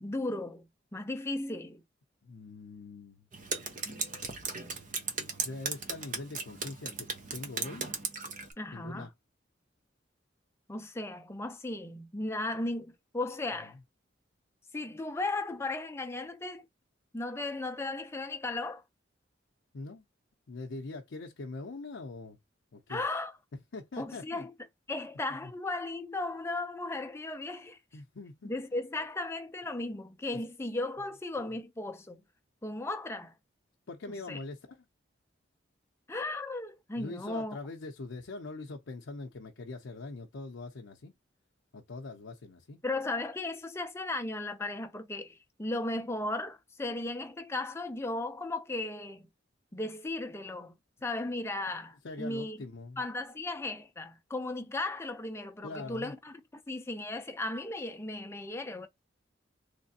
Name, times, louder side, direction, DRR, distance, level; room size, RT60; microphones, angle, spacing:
voice 1, 0.0-1.8 8.6-9.1 10.7-13.8 14.7-16.6 17.1-18.8 22.9-23.3 24.0-24.5 24.9-27.8 28.4-32.2 32.6-33.3 34.3-34.4 36.1-37.6 42.8-49.3 49.7-50.7 51.0-52.6 53.0-56.3 56.7-58.9, left 2 dB, 15° left, 0.5 m, -36 dB
voice 2, 2.2-3.3 5.4-7.9 8.7-9.1 13.6-13.7 19.7-20.0 20.5-22.4 22.7-23.0 23.5-24.4 25.4-25.5 27.9-28.5 30.3-30.4 33.9-34.9 37.0-41.2 41.7-42.8 51.7-51.8 52.0-53.0 55.6-56.1, left 3 dB, 75° left, 0.6 m, -43 dB
Drip, 3.3-8.5, right 4 dB, 45° right, 0.7 m, -37 dB
3.3 x 3.2 x 2.7 m
head